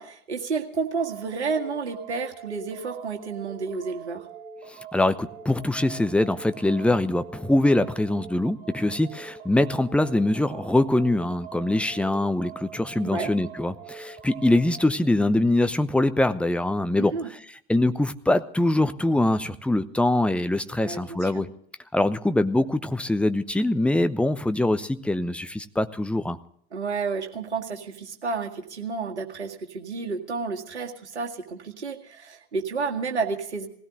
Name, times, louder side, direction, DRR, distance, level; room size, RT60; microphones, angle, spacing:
voice 1, 0.0-4.3 13.0-13.3 17.0-17.3 20.8-21.4 26.7-33.7, right 4 dB, 80° right, 2 dB, 2.1 m, -31 dB
sound 1, 0.9-14.9, right 7 dB, 55° right, 2.9 m, -43 dB
voice 2, 4.9-17.1 17.7-21.5 21.9-26.4, left 1 dB, 5° left, 11 dB, 0.9 m, -23 dB
19.0 x 17.0 x 3.8 m, 0.66 s
figure-of-eight pair, 70°, 34 cm